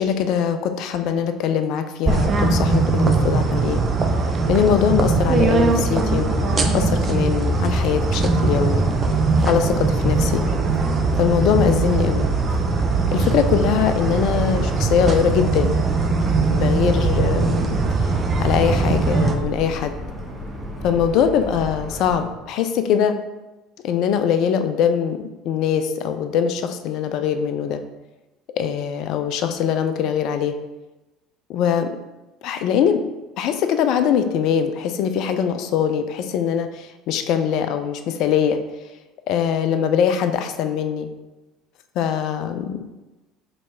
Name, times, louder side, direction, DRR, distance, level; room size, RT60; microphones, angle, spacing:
voice 1, 0.0-3.8 4.5-8.9 9.4-10.4 11.2-12.3 13.1-15.8 16.5-17.7 18.0-18.1 18.4-19.9 20.8-23.2 23.8-27.8 28.6-30.5 31.5-31.9 32.4-33.0 33.4-38.6 39.3-41.1 42.0-42.9, left 8 dB, 60° left, 8 dB, 0.4 m, -22 dB
sound 1, 2.1-19.4, right 3 dB, 35° right, 0.5 m, -20 dB
Motor vehicle (road) / Siren, 7.7-22.2, right 1 dB, 15° right, 1.0 m, -33 dB
4.1 x 3.1 x 3.4 m, 1.1 s
hypercardioid pair, 65°, 0 cm